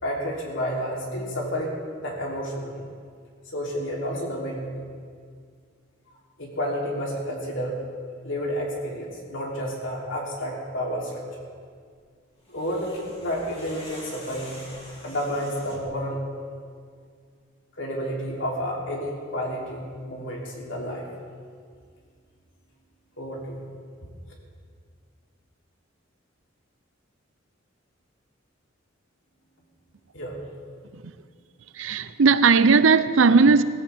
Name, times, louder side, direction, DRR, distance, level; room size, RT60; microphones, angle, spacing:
voice 1, 0.0-2.8 3.5-4.8 6.4-7.8 8.2-11.4 12.5-14.6 15.0-16.2 17.8-21.1 23.2-23.6 30.1-30.4, equal, 75° left, 3.2 m, -30 dB
sound 1, 12.4-16.0, left 1 dB, 30° left, 2.7 m, -45 dB
voice 2, 31.7-33.6, right 4 dB, 85° right, 0.6 m, -17 dB
17.5 x 16.0 x 3.5 m
head